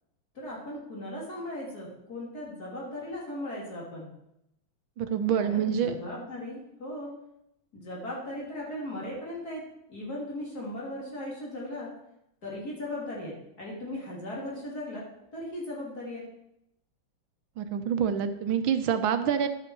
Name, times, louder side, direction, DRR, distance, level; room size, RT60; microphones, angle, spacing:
voice 1, 0.4-4.1 5.3-7.1 7.7-9.6 9.9-11.9 12.4-15.0 15.3-16.2, left 1 dB, 50° left, -4 dB, 3.6 m, -37 dB
voice 2, 5.0-5.9 17.6-19.5, right 8 dB, 80° right, 9 dB, 1.6 m, -26 dB
11.0 x 7.9 x 4.6 m, 0.82 s
omnidirectional pair, 2.2 m